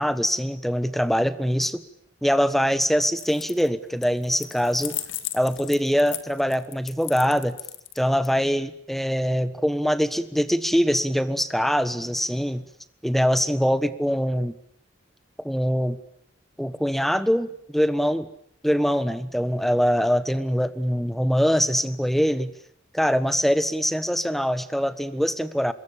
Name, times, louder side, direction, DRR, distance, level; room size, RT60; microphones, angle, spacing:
voice 1, 0.0-1.8 2.2-5.0 5.3-7.6 8.0-12.6 13.0-14.5 15.4-16.0 16.6-18.3 18.6-22.5 22.9-25.7, equal, ahead, 14 dB, 1.3 m, -23 dB
sound 1, 3.1-3.7 4.0-8.3, left 13 dB, 75° left, 2.0 m, -36 dB
26.0 x 21.5 x 9.8 m, 0.68 s
head